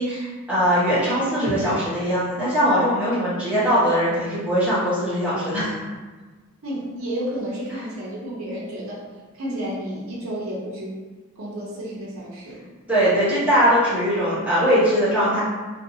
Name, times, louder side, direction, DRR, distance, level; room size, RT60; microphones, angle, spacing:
voice 1, 0.0-5.8 12.9-15.4, equal, 5° right, -11 dB, 0.9 m, -21 dB
voice 2, 6.6-9.0 9.3-11.0 11.4-12.6, equal, 75° right, -5 dB, 0.6 m, -31 dB
2.6 x 2.5 x 2.7 m, 1.3 s
head